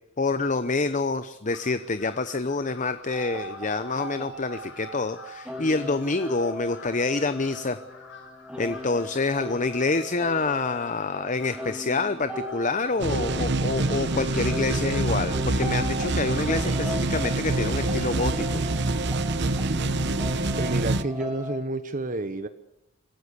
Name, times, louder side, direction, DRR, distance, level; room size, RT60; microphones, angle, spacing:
voice 1, 0.2-7.8 8.6-18.6, left 3 dB, 35° left, 12 dB, 0.8 m, -27 dB
Crow, 1.4-16.8, left 4 dB, 60° left, 7.3 m, -49 dB
sound 1, 3.1-21.6, equal, 5° right, 3.7 m, -38 dB
sound 2, 13.0-21.0, right 2 dB, 55° right, 1.1 m, -26 dB
voice 2, 20.6-22.5, right 2 dB, 40° right, 10 dB, 1.1 m, -30 dB
26.5 x 16.0 x 8.3 m, 0.84 s
head